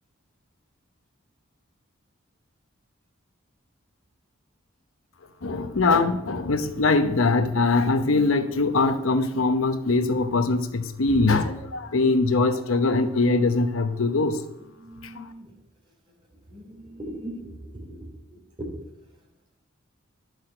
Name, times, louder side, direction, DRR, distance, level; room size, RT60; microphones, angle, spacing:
voice 1, 5.4-14.4 15.2-15.3, left 3 dB, 80° left, 9 dB, 0.9 m, -22 dB
voice 2, 14.6-15.5 16.5-18.0 18.3-18.7, right 1 dB, 25° right, -1 dB, 3.3 m, -39 dB
11.5 x 6.4 x 7.6 m, 0.89 s
head